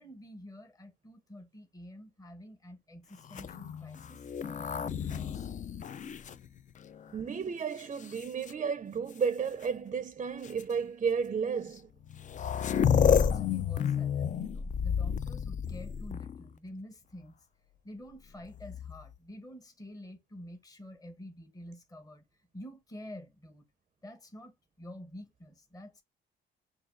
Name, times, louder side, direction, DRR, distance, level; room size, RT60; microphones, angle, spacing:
voice 1, 0.0-5.5 12.9-17.4 17.8-22.3 22.5-23.7 24.0-26.0, left 1 dB, 20° left, 0.9 m, -48 dB
sound 1, 3.2-7.1 7.8-8.5 9.6-9.7 10.4-10.6 11.8-11.9 12.0-16.5 18.4-19.1, left 8 dB, 40° left, 0.4 m, -31 dB
voice 2, 7.1-11.9, right 6 dB, 35° right, 0.5 m, -33 dB
6.5 x 2.4 x 2.5 m
cardioid pair, 90°, 20 cm